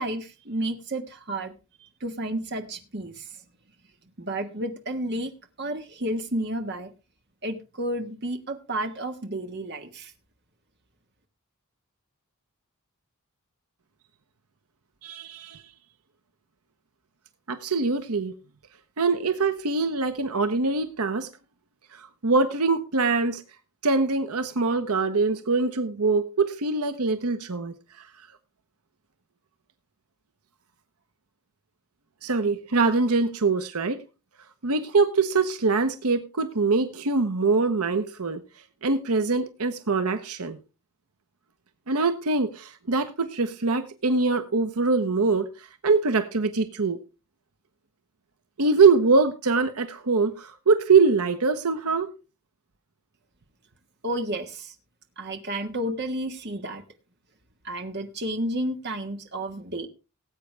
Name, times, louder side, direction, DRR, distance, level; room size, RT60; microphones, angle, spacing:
voice 1, 0.0-1.5 2.0-3.3 4.2-5.3 5.6-6.9 7.4-10.1 54.0-54.7 55.2-56.8 57.6-59.9, right 1 dB, 50° right, 1.6 m, -31 dB
voice 2, 15.0-15.6 17.5-18.4 19.0-21.3 21.9-23.4 23.8-28.1 32.2-34.0 34.6-38.4 38.8-40.6 41.9-47.0 48.6-52.1, right 4 dB, 85° right, 1.0 m, -23 dB
18.5 x 8.3 x 3.4 m
head